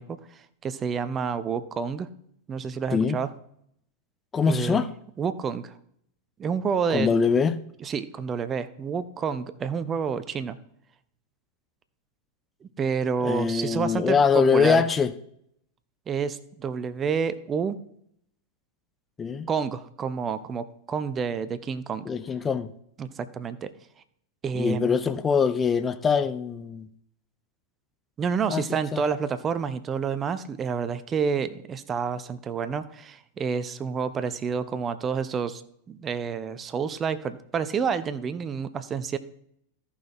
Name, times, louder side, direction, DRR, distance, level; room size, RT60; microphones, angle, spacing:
voice 1, 0.0-2.1 2.5-3.3 4.5-4.8 5.2-5.8 6.4-7.1 7.8-10.6 12.6-14.8 16.1-17.8 19.5-22.1 23.0-23.7 24.4-25.0 28.2-35.6 35.9-39.2, right 6 dB, 25° right, 0.6 m, -29 dB
voice 2, 4.3-4.9 6.9-7.6 13.2-15.1 19.2-19.5 22.1-22.7 24.6-26.9 28.5-28.6 28.9-29.0, left 5 dB, 20° left, 0.5 m, -23 dB
14.0 x 5.6 x 4.3 m
figure-of-eight pair, 90°, 0 cm